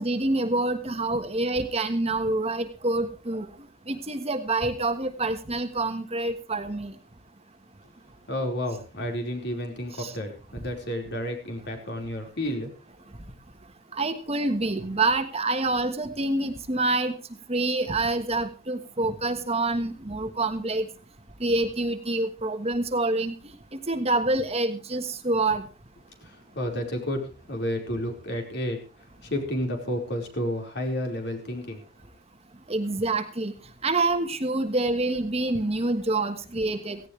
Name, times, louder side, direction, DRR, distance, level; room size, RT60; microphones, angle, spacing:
voice 1, 0.0-3.5 3.9-6.9 10.0-10.1 13.9-17.1 17.5-20.9 21.4-25.7 32.7-33.5 33.8-37.0, right 2 dB, 30° right, 8 dB, 1.5 m, -27 dB
voice 2, 8.3-12.7 26.2-31.8, left 1 dB, 55° left, 3 dB, 4.7 m, -31 dB
17.5 x 16.5 x 3.3 m, 0.33 s
head